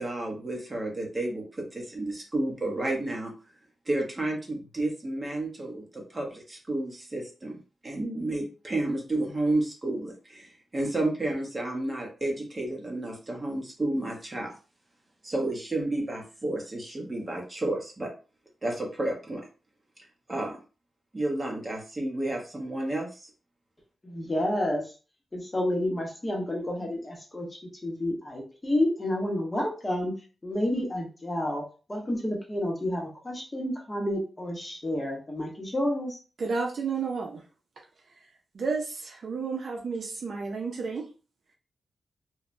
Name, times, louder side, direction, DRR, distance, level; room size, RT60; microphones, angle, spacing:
voice 1, 0.0-3.3 3.9-7.6 7.8-14.6 15.2-18.1 18.6-19.4 20.3-20.6 21.1-23.3, right 2 dB, 25° right, 0 dB, 0.8 m, -31 dB
voice 2, 24.0-24.8 25.3-30.1 30.4-31.6 31.9-36.2, left 1 dB, 20° left, -1 dB, 0.8 m, -30 dB
voice 3, 36.4-37.4 38.5-41.1, right 4 dB, 55° right, 1 dB, 0.5 m, -31 dB
3.2 x 2.1 x 2.5 m, 0.35 s
wide cardioid pair, 150°, 0 cm